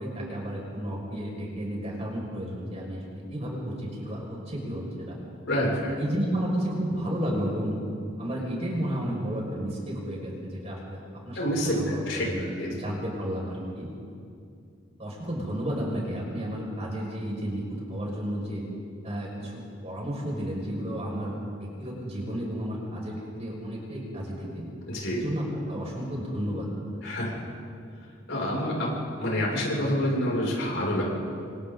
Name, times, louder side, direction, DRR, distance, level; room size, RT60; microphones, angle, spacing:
voice 1, 0.0-5.2 6.0-7.8 8.2-11.0 11.2-13.9 15.0-18.6 19.0-24.6 25.1-27.0, equal, 35° right, -3 dB, 6.0 m, -32 dB
voice 2, 5.5-5.9 11.3-12.3 12.6-12.7 24.9-25.2 27.0-27.3 28.3-31.0, equal, 70° left, -3 dB, 6.8 m, -27 dB
28.5 x 26.0 x 4.0 m, 2.4 s
head